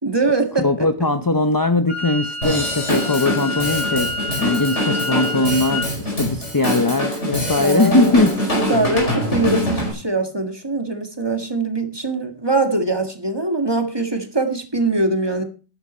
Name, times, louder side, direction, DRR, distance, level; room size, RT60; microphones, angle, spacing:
voice 1, 0.0-0.9 7.6-8.3 8.7-15.4, right 3 dB, 20° right, 1.9 m, -22 dB
voice 2, 0.6-8.4, left 2 dB, 20° left, 0.6 m, -20 dB
Wind instrument woodwind instrument, 1.9-5.9, left 2 dB, 70° right, 4.8 m, -28 dB
Drum kit / Drum, 2.4-9.9, equal, 80° left, 5.4 m, -24 dB
13.0 x 10.0 x 4.3 m
omnidirectional pair, 1.2 m